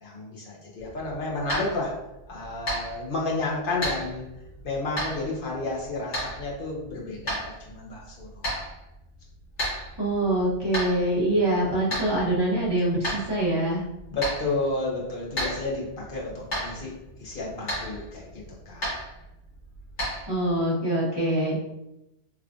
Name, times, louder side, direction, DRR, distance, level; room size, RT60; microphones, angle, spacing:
voice 1, 0.0-2.0 2.3-4.3 4.6-8.7 14.1-16.9 17.2-18.9, left 2 dB, 50° left, -4 dB, 1.1 m, -31 dB
sound 1, 0.8-20.7, equal, 70° left, 1.9 m, -35 dB
voice 2, 10.0-13.8 20.3-21.6, right 1 dB, 20° right, -6 dB, 1.0 m, -24 dB
3.5 x 3.2 x 2.4 m, 0.91 s
omnidirectional pair, 1.2 m